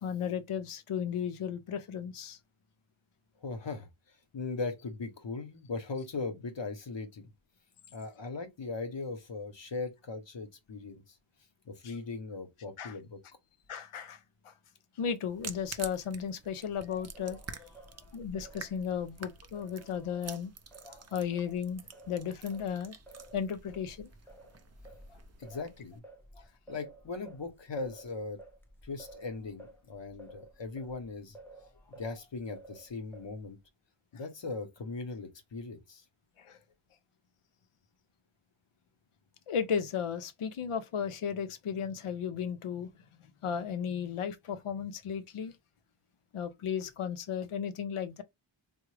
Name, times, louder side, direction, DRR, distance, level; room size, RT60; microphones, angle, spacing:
voice 1, 0.0-2.4 11.8-11.9 12.8-13.0 13.7-14.2 14.4-14.5 15.0-17.7 18.1-20.5 20.8-23.0 23.3-24.1 36.4-36.6 39.5-42.9 43.4-45.5 46.3-48.2, left 7 dB, 85° left, 0.6 m, -35 dB
voice 2, 3.4-7.3 7.9-11.2 11.6-13.2 25.4-26.0 26.7-28.4 28.8-31.4 31.9-33.6 34.1-36.0, left 3 dB, 60° left, 0.9 m, -39 dB
sound 1, 15.3-26.0, right 5 dB, 35° right, 0.5 m, -49 dB
Singing, 17.1-21.5 21.9-32.2 32.5-33.5, right 1 dB, 5° left, 0.7 m, -54 dB
3.5 x 2.1 x 3.2 m
cardioid pair, 40°, 49 cm